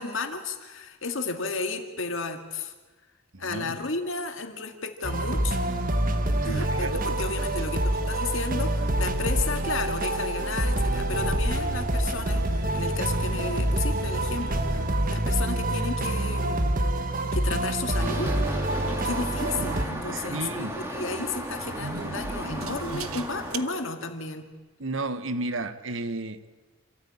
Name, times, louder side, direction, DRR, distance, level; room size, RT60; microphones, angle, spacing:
voice 1, 0.0-2.7 3.4-5.6 6.4-16.8 17.3-18.3 19.0-24.5, left 4 dB, 65° left, 6 dB, 2.0 m, -33 dB
voice 2, 3.3-3.8 6.4-7.2 20.1-20.8 24.8-26.5, right 2 dB, 65° right, 12 dB, 1.1 m, -33 dB
sound 1, 5.0-19.8, right 1 dB, 40° right, 1.4 m, -26 dB
sound 2, 6.5-23.6, right 3 dB, 85° right, 1.1 m, -41 dB
sound 3, 18.0-23.6, right 1 dB, 10° right, 2.2 m, -35 dB
27.5 x 13.5 x 8.8 m, 1.3 s
head